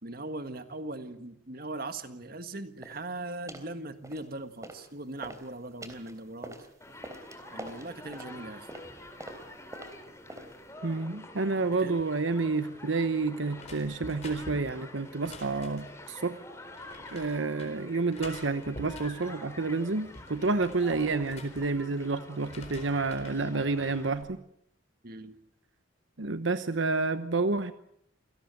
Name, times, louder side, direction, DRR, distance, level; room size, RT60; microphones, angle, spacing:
voice 1, 0.0-6.6 7.5-8.7 11.8-12.0 25.0-25.3, right 2 dB, 50° right, 9 dB, 1.8 m, -40 dB
sound 1, 2.8-3.1 3.5-3.7 4.0-4.9 5.2-10.7, right 1 dB, 15° right, 3.4 m, -46 dB
Human group actions, 6.8-24.1, left 1 dB, 15° left, 3.4 m, -47 dB
voice 2, 10.8-16.4 17.1-24.4 26.2-27.7, right 3 dB, 80° right, 11 dB, 1.0 m, -29 dB
sound 2, 13.6-16.1 16.8-17.7 18.1-19.4 19.8-22.1 22.4-23.4 23.9-24.3, left 2 dB, 35° left, 4.2 m, -47 dB
27.5 x 18.0 x 7.9 m, 0.75 s
head